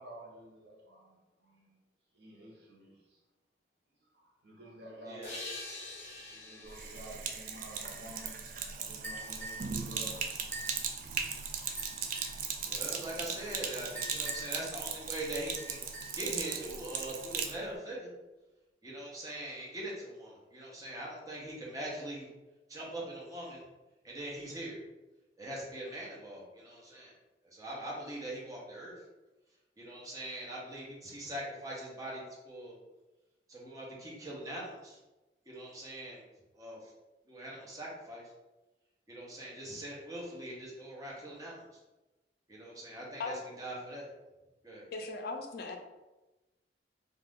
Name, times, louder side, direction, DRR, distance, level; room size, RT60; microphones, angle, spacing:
voice 1, 0.0-1.8 2.1-3.0 4.1-5.5 6.3-10.2 11.5-12.0 12.5-12.8, right 1 dB, 65° right, -3 dB, 0.9 m, -51 dB
voice 2, 5.0-5.4 12.6-15.9 16.2-18.1 18.8-22.3 22.7-23.6 24.0-24.8 25.4-27.1 27.4-29.0 29.8-32.8 33.5-35.0 35.5-36.2 36.5-36.9 37.2-38.3 39.1-41.8 42.5-44.1 44.6-44.9, right 1 dB, 20° right, -4 dB, 0.7 m, -42 dB
sound 1, 5.2-8.7, left 2 dB, 35° left, 1.0 m, -46 dB
Sink (filling or washing), 6.7-17.6, right 6 dB, 50° right, 0.3 m, -38 dB
sound 2, 9.0-9.7 10.5-10.8 11.8-12.4 13.9-14.7 15.6-16.3, right 1 dB, 5° left, 1.4 m, -44 dB
voice 3, 44.9-45.8, left 3 dB, 60° left, 4 dB, 0.4 m, -38 dB
2.4 x 2.4 x 3.5 m, 1.1 s
head